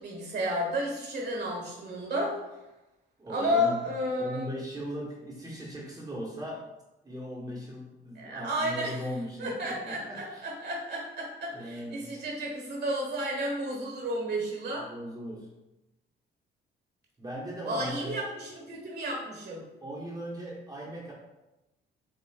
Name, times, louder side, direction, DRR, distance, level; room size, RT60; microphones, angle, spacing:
voice 1, 0.0-2.4 3.3-4.5 8.2-9.0 9.4-14.9 17.6-19.6, equal, 55° right, 0 dB, 1.3 m, -32 dB
voice 2, 3.2-3.9 4.2-6.7 7.0-10.4 11.5-12.1 14.8-15.5 17.2-18.3 19.8-21.1, equal, 20° right, -5 dB, 1.1 m, -38 dB
7.2 x 2.4 x 2.3 m, 1.0 s
cardioid pair, 90°, 20 cm